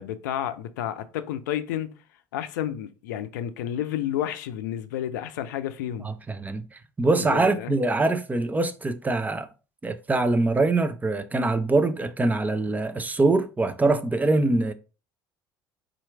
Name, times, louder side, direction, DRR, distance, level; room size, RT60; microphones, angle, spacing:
voice 1, 0.0-1.9 2.3-6.1 7.2-7.7, left 11 dB, 70° left, 0.5 m, -31 dB
voice 2, 6.0-6.7 7.0-9.5 9.8-14.7, right 2 dB, 15° right, 0.6 m, -23 dB
4.3 x 2.5 x 4.6 m
figure-of-eight pair, 65°, 10 cm